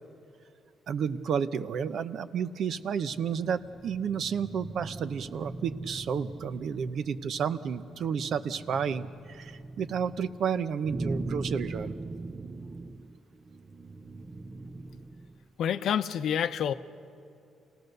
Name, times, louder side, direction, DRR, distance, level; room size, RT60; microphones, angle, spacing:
voice 1, 0.9-12.0, right 7 dB, 65° right, 12 dB, 0.7 m, -31 dB
sound 1, 2.8-15.4, right 2 dB, 30° right, 0.7 m, -41 dB
voice 2, 15.6-16.7, left 9 dB, 70° left, 11 dB, 0.7 m, -28 dB
27.5 x 17.5 x 6.7 m, 2.5 s
cardioid pair, 90°, 0 cm